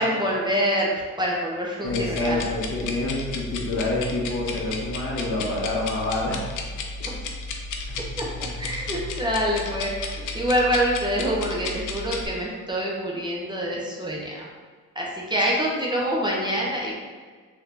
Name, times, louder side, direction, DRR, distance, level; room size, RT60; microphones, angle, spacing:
voice 1, 0.0-2.5 7.1-7.2 8.2-10.0 10.3-14.5 15.0-16.9, equal, 15° right, -4 dB, 0.8 m, -26 dB
voice 2, 1.8-6.5 7.9-8.9 10.1-10.3, left 2 dB, 45° left, -4 dB, 0.8 m, -28 dB
sound 1, 1.9-12.3, left 3 dB, 80° left, 0.5 m, -33 dB
3.7 x 2.8 x 3.2 m, 1.5 s
cardioid pair, 90°, 30 cm